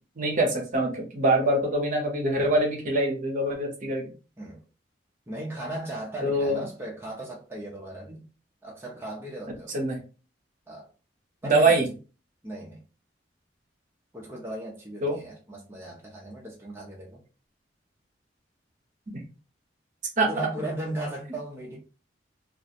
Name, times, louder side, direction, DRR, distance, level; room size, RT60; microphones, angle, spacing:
voice 1, 0.2-4.1 6.2-6.6 9.7-10.0 11.4-11.8 15.0-15.2 20.2-20.5, right 2 dB, 45° right, 0.7 m, -24 dB
voice 2, 5.3-8.3 8.6-9.8 10.7-10.9 11.4-11.8 12.4-12.8 14.1-17.2 20.2-21.8, right 1 dB, 15° right, 0.5 m, -36 dB
2.4 x 2.1 x 2.7 m
head